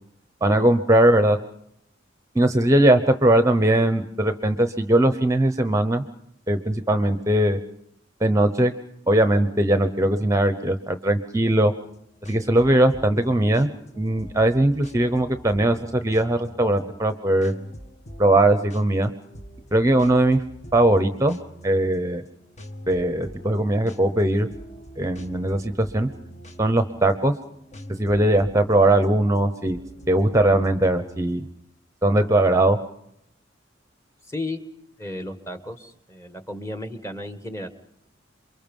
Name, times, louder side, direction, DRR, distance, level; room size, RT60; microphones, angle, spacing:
voice 1, 0.4-1.4 2.3-6.0 6.5-7.6 8.2-8.7 9.1-11.7 12.3-13.7 14.0-17.5 18.2-19.1 19.7-20.4 20.7-21.4 21.6-22.2 22.9-24.5 25.0-26.1 26.6-27.3 28.0-29.8 30.1-31.5 32.0-32.8, right 1 dB, 15° right, 9 dB, 0.9 m, -20 dB
sound 1, 11.8-31.5, equal, 35° left, 1.4 m, -43 dB
voice 2, 34.3-34.6 35.0-37.7, left 1 dB, 15° left, 8 dB, 1.6 m, -34 dB
28.0 x 23.0 x 5.4 m, 0.73 s
head